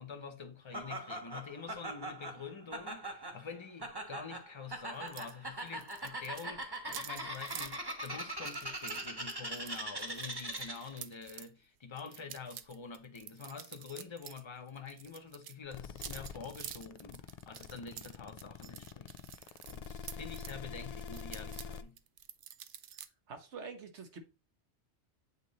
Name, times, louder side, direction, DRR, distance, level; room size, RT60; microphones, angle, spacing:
voice 1, 0.0-22.0, left 5 dB, 30° left, 0.8 m, -47 dB
Laughter, 0.7-11.0, right 1 dB, 20° right, 1.1 m, -41 dB
sound 1, 5.1-5.3 5.6-11.5 12.0-14.4 14.7-20.6 21.0-23.1, right 9 dB, 60° right, 0.6 m, -49 dB
sound 2, 15.7-21.8, left 6 dB, 65° left, 0.3 m, -45 dB
voice 2, 23.3-24.2, right 5 dB, 75° right, 1.4 m, -46 dB
8.2 x 3.0 x 4.0 m
omnidirectional pair, 1.2 m